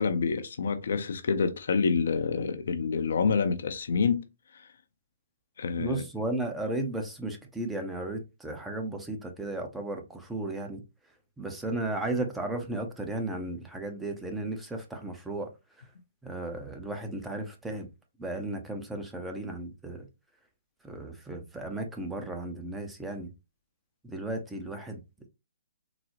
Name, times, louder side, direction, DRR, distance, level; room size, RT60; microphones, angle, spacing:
voice 1, 0.0-4.2 5.6-6.0, left 5 dB, 70° left, 0.5 m, -27 dB
voice 2, 5.8-10.8 11.4-15.5 16.2-17.9 18.2-20.1 20.8-23.3 24.0-25.0, right 2 dB, 5° right, 0.6 m, -34 dB
3.8 x 2.0 x 2.9 m
hypercardioid pair, 145°, 0 cm